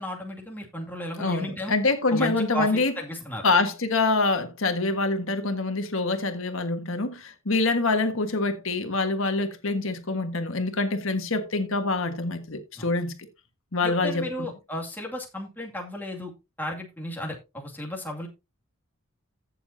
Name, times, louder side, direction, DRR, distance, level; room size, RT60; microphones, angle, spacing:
voice 1, 0.0-1.7 2.1-3.5 12.8-12.9 13.8-16.3 16.6-18.3, equal, 10° left, 2.3 m, -34 dB
voice 2, 1.2-2.9 3.4-13.1 13.7-14.5, left 3 dB, 65° left, 1.5 m, -25 dB
15.5 x 7.1 x 2.7 m
head